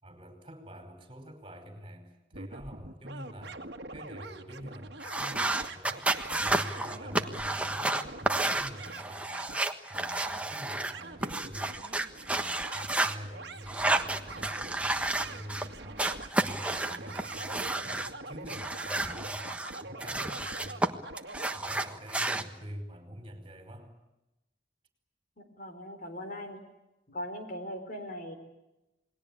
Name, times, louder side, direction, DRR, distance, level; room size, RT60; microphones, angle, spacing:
voice 1, 0.0-3.6 3.9-6.1 6.4-9.5 9.9-11.8 12.3-16.0 16.3-21.1 21.5-23.9, equal, 30° right, 7 dB, 4.9 m, -46 dB
sound 1, 2.3-21.6, right 2 dB, 70° right, 1.8 m, -45 dB
sound 2, 5.0-10.9 11.2-13.1 13.7-15.7 16.0-18.1 18.5-20.9 21.2-22.4, right 2 dB, 5° right, 1.3 m, -31 dB
voice 2, 25.4-26.6 27.1-28.4, equal, 50° left, 6 dB, 4.2 m, -40 dB
29.0 x 20.5 x 8.6 m, 0.98 s
head